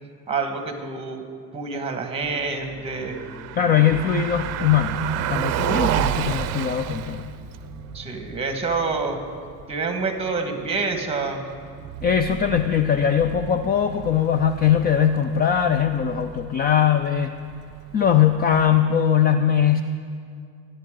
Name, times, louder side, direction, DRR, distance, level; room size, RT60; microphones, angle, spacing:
voice 1, 0.3-1.2 1.5-3.2 3.6-4.0 7.9-9.2 9.7-11.4, right 4 dB, 15° right, 5 dB, 1.6 m, -27 dB
sound 1, 2.2-8.5, left 2 dB, 10° left, 3.7 m, -43 dB
Car passing by, 2.9-19.0, right 11 dB, 50° right, 0.6 m, -32 dB
voice 2, 3.5-7.3 12.0-17.4 17.9-19.8, left 9 dB, 30° left, 9 dB, 0.4 m, -20 dB
25.0 x 10.0 x 3.8 m, 2.3 s
cardioid pair, 145°, 35 cm